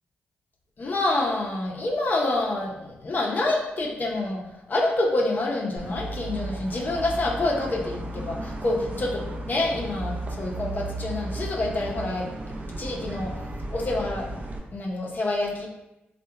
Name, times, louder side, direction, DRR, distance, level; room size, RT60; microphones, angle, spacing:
voice 1, 0.8-4.4 4.7-12.3 12.8-13.3 13.7-14.4 14.7-15.7, left 2 dB, 45° left, -1 dB, 0.5 m, -27 dB
sound 1, 5.8-14.6, right 2 dB, 40° right, 0.4 m, -34 dB
2.7 x 2.1 x 2.3 m, 0.93 s
cardioid pair, 65°, 4 cm